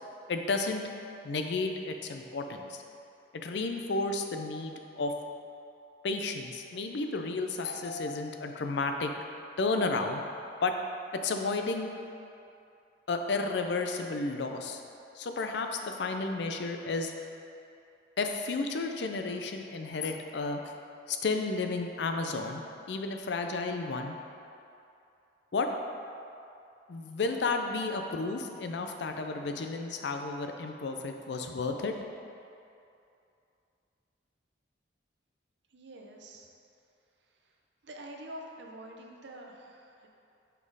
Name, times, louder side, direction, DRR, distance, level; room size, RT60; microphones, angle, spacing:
voice 1, 0.3-0.8 1.2-2.8 3.3-5.1 6.0-9.1 9.6-10.2 10.6-10.8 11.1-11.9 13.1-14.8 15.1-17.1 18.2-20.8 21.1-24.2 25.5-25.7 26.9-31.9, left 3 dB, 65° left, 5 dB, 0.4 m, -32 dB
voice 2, 35.7-36.5 37.2-40.1, right 1 dB, 65° right, 1 dB, 0.7 m, -47 dB
5.5 x 4.3 x 4.7 m, 2.6 s
head